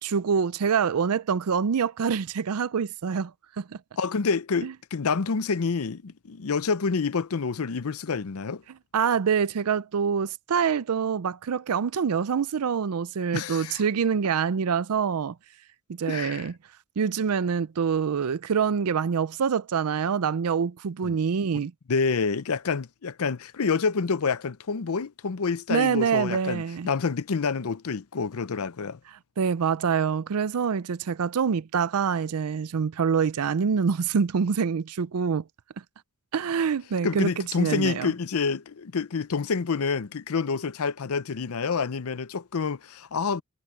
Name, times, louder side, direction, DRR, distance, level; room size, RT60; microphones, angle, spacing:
voice 1, 0.0-3.3 3.6-3.7 4.6-4.7 8.9-15.3 16.0-16.5 17.0-21.7 25.7-26.9 29.4-35.4 36.3-37.3 37.6-38.1, right 6 dB, 80° right, 0.5 m, -25 dB
voice 2, 4.0-8.6 13.3-13.8 16.1-16.5 21.0-21.2 21.5-21.6 21.9-29.0 37.0-43.4, left 5 dB, 70° left, 0.6 m, -28 dB
head